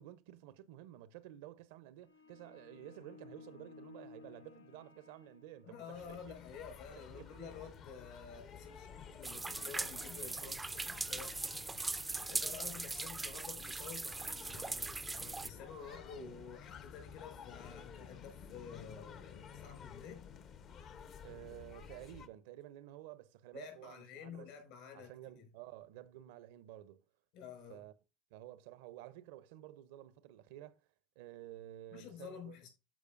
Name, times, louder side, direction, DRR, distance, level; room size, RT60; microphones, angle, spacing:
voice 1, 0.0-6.4 7.1-7.3 10.4-10.6 21.2-24.5 24.9-27.0 27.7-27.9 28.3-30.8 31.2-32.6, right 14 dB, 65° right, 0.6 m, -52 dB
sound 1, 2.0-6.0, left 4 dB, 85° left, 0.6 m, -57 dB
voice 2, 5.6-20.3 23.5-25.5 27.3-27.8 31.9-32.7, left 6 dB, 60° left, 5.0 m, -51 dB
sound 2, 5.9-22.3, left 7 dB, 45° left, 0.9 m, -53 dB
sound 3, 9.2-15.5, right 3 dB, 15° right, 0.4 m, -40 dB
13.5 x 4.9 x 2.5 m
hypercardioid pair, 75°, 0 cm